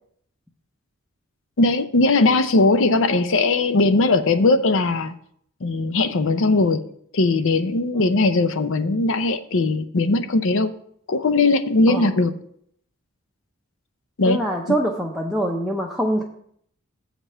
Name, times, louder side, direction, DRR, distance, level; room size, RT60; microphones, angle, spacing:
voice 1, 1.6-5.1 5.6-6.8 7.1-10.7 11.1-12.3 14.2-14.4, left 3 dB, 60° left, 11 dB, 0.6 m, -19 dB
voice 2, 14.3-16.2, right 1 dB, ahead, -2 dB, 0.6 m, -24 dB
7.3 x 5.2 x 6.6 m, 0.67 s
head